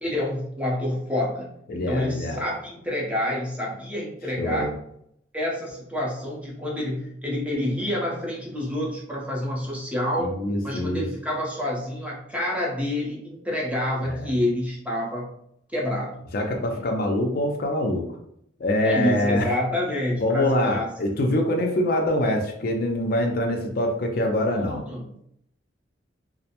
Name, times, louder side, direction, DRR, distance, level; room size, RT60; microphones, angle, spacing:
voice 1, 0.0-4.7 5.3-10.3 10.6-15.3 15.7-16.2 16.7-16.9 18.8-20.9 24.5-25.2, left 1 dB, 5° right, -4 dB, 0.6 m, -28 dB
voice 2, 1.7-2.4 4.4-4.7 10.2-11.0 14.0-14.3 16.3-18.0 18.6-19.5 20.2-24.8, left 1 dB, 50° left, 2 dB, 0.4 m, -24 dB
2.4 x 2.0 x 2.8 m, 0.73 s
head